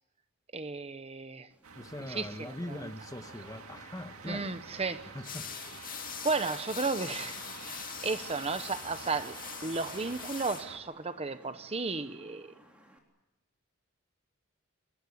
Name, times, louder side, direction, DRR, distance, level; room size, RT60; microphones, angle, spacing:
voice 1, 0.5-1.5 2.1-2.5 4.3-5.1 6.2-12.5, right 3 dB, 30° right, 0.9 m, -34 dB
Wind / Rain, 1.5-13.0, equal, 5° right, 3.8 m, -59 dB
sound 1, 1.6-10.8, right 5 dB, 75° right, 2.1 m, -48 dB
voice 2, 1.7-4.6 5.1-5.5, left 1 dB, 15° left, 1.2 m, -42 dB
sound 2, 5.2-10.7, left 8 dB, 40° left, 2.5 m, -43 dB
25.0 x 20.5 x 9.6 m
head